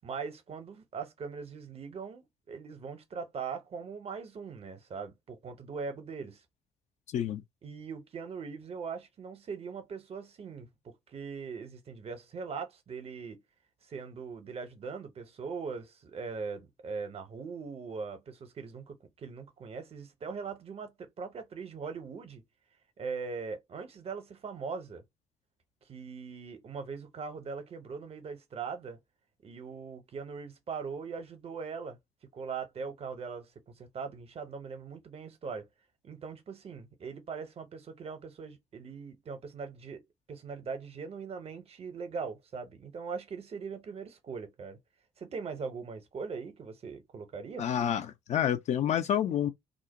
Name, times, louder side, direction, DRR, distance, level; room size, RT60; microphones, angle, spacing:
voice 1, 0.0-6.4 7.6-13.4 13.8-22.4 23.0-25.0 25.9-29.0 29.4-32.0 32.3-35.7 36.0-40.0 40.3-44.8 45.2-47.7, right 5 dB, 40° right, 0.7 m, -40 dB
voice 2, 7.1-7.4 47.6-49.5, left 9 dB, 50° left, 0.4 m, -29 dB
2.5 x 2.0 x 2.8 m
hypercardioid pair, 45°, 15 cm